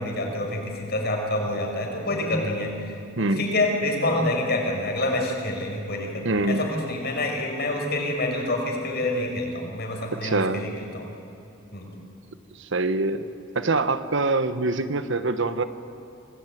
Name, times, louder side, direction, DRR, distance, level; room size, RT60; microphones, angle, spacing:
voice 1, 0.0-11.1 11.7-11.9, left 1 dB, 55° left, 1 dB, 5.6 m, -27 dB
voice 2, 6.2-6.7 10.1-10.7 12.6-13.3 13.5-15.6, right 2 dB, 65° right, 11 dB, 1.2 m, -24 dB
27.0 x 19.0 x 9.3 m, 2.7 s
head